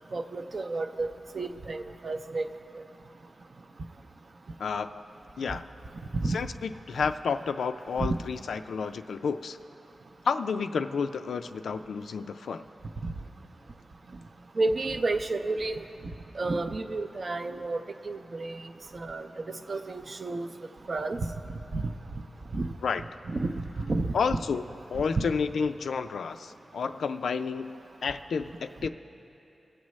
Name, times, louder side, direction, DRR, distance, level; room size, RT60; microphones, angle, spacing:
voice 1, 0.0-2.5 5.5-5.6 6.2-6.4 8.0-8.2 14.6-15.8 16.3-18.7 18.9-19.3 19.7-20.5 20.9-21.3 21.7-21.9 22.5-22.7 23.3-24.4 25.2-25.3, right 3 dB, 45° right, 7 dB, 0.5 m, -31 dB
voice 2, 4.6-5.1 5.4-5.6 6.3-9.6 10.3-12.6 22.8-23.0 24.1-24.6 24.9-28.9, left 5 dB, 90° left, 9 dB, 0.3 m, -30 dB
22.0 x 7.4 x 3.1 m, 3.0 s
wide cardioid pair, 95°, 0 cm